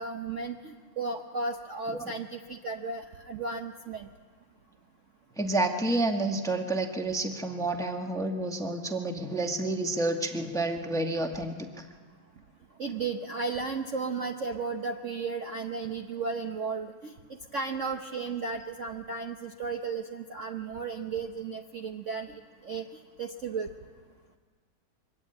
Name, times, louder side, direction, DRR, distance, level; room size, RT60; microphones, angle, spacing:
voice 1, 0.0-4.1 12.8-22.9 23.2-23.7, right 4 dB, 50° right, 4 dB, 1.0 m, -34 dB
voice 2, 5.4-11.8, right 2 dB, ahead, 4 dB, 1.1 m, -29 dB
23.5 x 20.0 x 8.8 m, 1.5 s
omnidirectional pair, 2.2 m